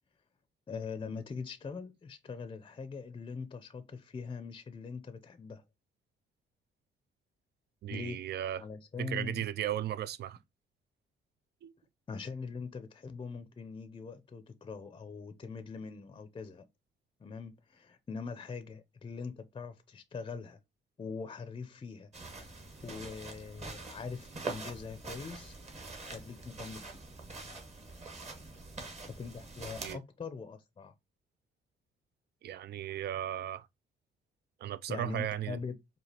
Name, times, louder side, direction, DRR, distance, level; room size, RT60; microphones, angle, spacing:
voice 1, 0.7-5.6 7.9-8.2 8.6-9.4 12.1-16.6 17.2-20.6 21.0-25.6 26.0-26.9 29.1-30.9 34.9-35.7, left 5 dB, 25° left, 0.5 m, -42 dB
voice 2, 7.8-8.6 9.0-10.4 11.6-11.7 29.8-30.0 32.4-33.7 34.6-35.6, right 11 dB, 55° right, 0.4 m, -36 dB
sound 1, 22.1-29.9, right 3 dB, 35° right, 1.3 m, -44 dB
4.8 x 2.4 x 2.8 m
cardioid pair, 90°, 20 cm